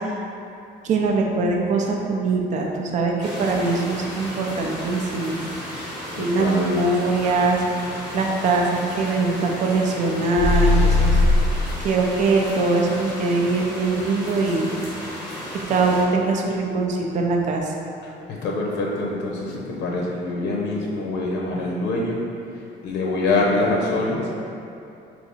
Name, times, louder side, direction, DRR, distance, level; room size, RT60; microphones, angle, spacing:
voice 1, 0.8-3.1 3.4-5.4 6.2-11.2 11.8-14.7 15.7-17.7, right 3 dB, 45° right, 0 dB, 0.5 m, -22 dB
sound 1, 3.2-16.0, equal, 5° right, 1.0 m, -34 dB
voice 2, 6.1-6.8 18.3-22.2 22.8-24.3, left 2 dB, 90° left, -2 dB, 0.7 m, -24 dB
sound 2, 10.4-11.6, left 2 dB, 35° left, 0.6 m, -17 dB
3.5 x 2.9 x 4.1 m, 2.7 s
cardioid pair, 170°, 18 cm